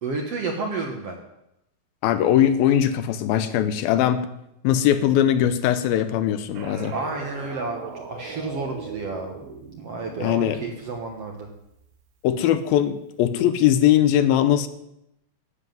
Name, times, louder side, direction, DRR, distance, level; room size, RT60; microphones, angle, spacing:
voice 1, 0.0-1.2 6.9-9.4 9.8-11.5, right 3 dB, 60° right, 2 dB, 1.7 m, -31 dB
voice 2, 2.0-4.3 4.6-6.9 10.2-10.6 12.2-14.7, left 11 dB, 80° left, 11 dB, 2.5 m, -20 dB
sound 1, 6.5-11.9, right 5 dB, 75° right, 3.6 m, -39 dB
11.5 x 7.5 x 9.3 m, 0.81 s
omnidirectional pair, 4.4 m